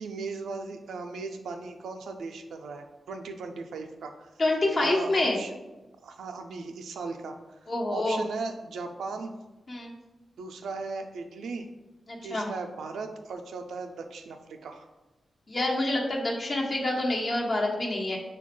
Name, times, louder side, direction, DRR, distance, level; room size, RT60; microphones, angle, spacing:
voice 1, 0.0-4.3 4.8-5.6 6.0-9.3 10.4-11.7 12.2-14.9, right 4 dB, 90° right, 5 dB, 0.4 m, -37 dB
voice 2, 4.4-5.4 7.7-8.2 9.7-9.9 12.1-12.5 15.5-18.2, left 2 dB, 50° left, -1 dB, 1.1 m, -27 dB
5.7 x 2.3 x 3.6 m, 1.1 s
cardioid pair, 50°, 0 cm